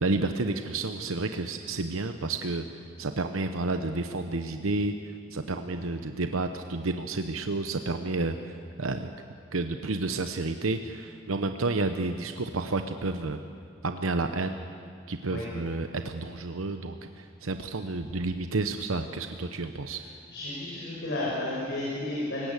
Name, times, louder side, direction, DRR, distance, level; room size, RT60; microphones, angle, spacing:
voice 1, 0.0-9.1 9.5-13.4 13.8-14.6 15.1-20.0, right 3 dB, 85° right, 7 dB, 1.0 m, -30 dB
voice 2, 20.3-22.5, left 1 dB, 60° left, -5 dB, 5.8 m, -33 dB
28.5 x 17.0 x 8.2 m, 2.3 s
head